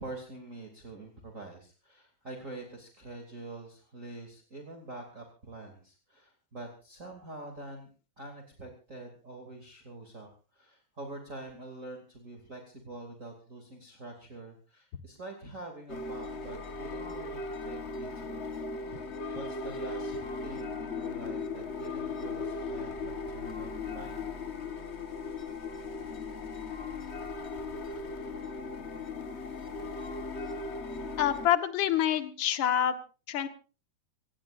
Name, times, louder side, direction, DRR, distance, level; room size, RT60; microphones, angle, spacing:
voice 1, 0.0-19.0 19.3-24.3, right 2 dB, 25° right, 2 dB, 2.8 m, -46 dB
sound 1, 15.9-31.5, left 3 dB, 85° left, 0.6 m, -37 dB
voice 2, 31.2-33.0 33.3-33.5, left 10 dB, 50° left, 9 dB, 1.8 m, -26 dB
26.0 x 18.5 x 2.6 m, 0.35 s
omnidirectional pair, 3.4 m